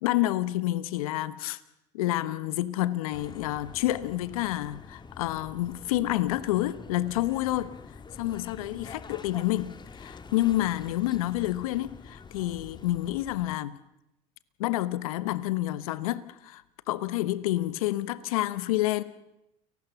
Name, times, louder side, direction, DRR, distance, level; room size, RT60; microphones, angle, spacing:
voice 1, 0.0-1.6 1.9-7.7 8.2-9.7 10.0-13.8 14.6-19.0, left 15 dB, 80° left, 1.3 m, -29 dB
sound 1, 3.1-13.6, left 5 dB, 25° left, 1.9 m, -47 dB
30.0 x 18.5 x 7.1 m
hypercardioid pair, 85°, 18 cm